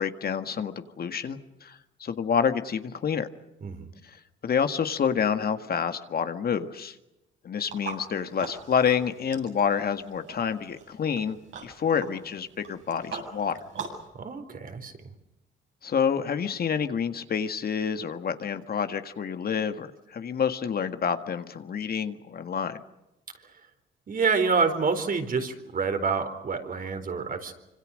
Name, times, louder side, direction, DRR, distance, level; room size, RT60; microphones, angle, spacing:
voice 1, 0.0-3.3 4.0-7.0 7.4-11.4 11.6-13.6 15.8-22.8, left 7 dB, 50° left, 8 dB, 1.8 m, -28 dB
voice 2, 3.6-3.9 14.1-14.9 24.1-27.5, right 5 dB, 45° right, 7 dB, 4.3 m, -27 dB
sound 1, 7.6-14.1, right 5 dB, 75° right, 7.9 m, -42 dB
26.0 x 26.0 x 6.5 m, 0.94 s
cardioid pair, 90°, 20 cm